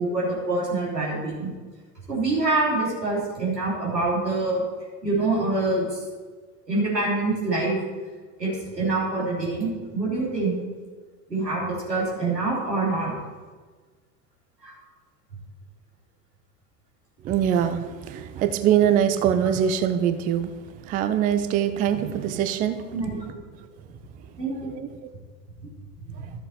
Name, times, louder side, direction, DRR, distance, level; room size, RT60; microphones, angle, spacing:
voice 1, 0.0-1.5 2.1-4.6 5.0-6.0 6.7-7.8 8.4-10.5 11.3-13.1 14.6-14.7 22.9-23.4 24.4-24.8 26.1-26.3, right 2 dB, 90° right, -5 dB, 3.3 m, -25 dB
voice 2, 17.2-22.9 24.8-24.9, right 9 dB, 20° right, 10 dB, 0.4 m, -23 dB
12.5 x 6.9 x 4.3 m, 1.4 s
figure-of-eight pair, 80°, 48 cm